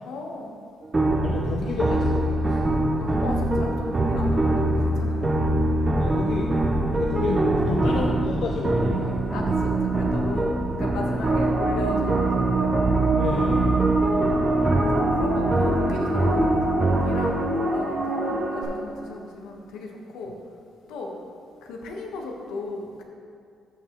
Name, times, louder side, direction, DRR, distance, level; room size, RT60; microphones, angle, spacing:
voice 1, 0.0-0.5 1.6-1.7 3.0-5.3 9.3-12.7 13.7-14.3 14.6-20.3 20.9-21.1 21.6-23.0, left 3 dB, 90° left, 1 dB, 1.1 m, -36 dB
sound 1, 0.9-17.3, right 2 dB, 25° right, 0.8 m, -23 dB
voice 2, 1.2-2.7 6.0-6.5 6.9-9.2 13.2-13.7, left 5 dB, 70° left, 1 dB, 0.6 m, -31 dB
sound 2, 11.3-18.6, right 1 dB, 60° right, 1.6 m, -26 dB
13.0 x 5.8 x 3.0 m, 2.4 s
cardioid pair, 90°, 0 cm